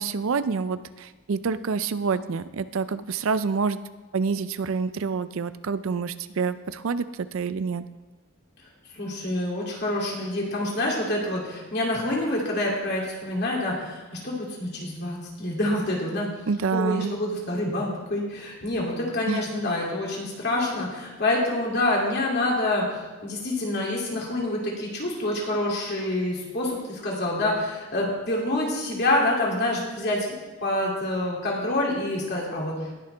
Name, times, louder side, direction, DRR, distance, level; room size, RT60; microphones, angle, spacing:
voice 1, 0.0-3.8 4.1-7.8 16.5-17.1 19.3-19.4, right 5 dB, 75° right, 14 dB, 0.5 m, -27 dB
voice 2, 8.9-16.3 16.7-22.8 23.2-30.4 30.6-32.9, left 1 dB, 50° left, -3 dB, 2.7 m, -27 dB
19.5 x 6.7 x 3.4 m, 1.2 s
head